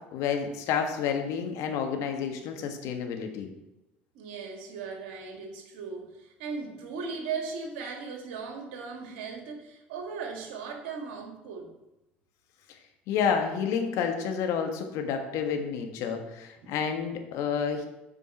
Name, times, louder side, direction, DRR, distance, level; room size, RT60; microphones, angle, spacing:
voice 1, 0.0-3.5 13.1-17.8, left 7 dB, 60° left, 5 dB, 1.4 m, -30 dB
voice 2, 4.1-11.7 16.6-16.7, right 5 dB, 70° right, 2 dB, 1.8 m, -38 dB
8.1 x 5.2 x 5.7 m, 0.93 s
hypercardioid pair, 65°, 6 cm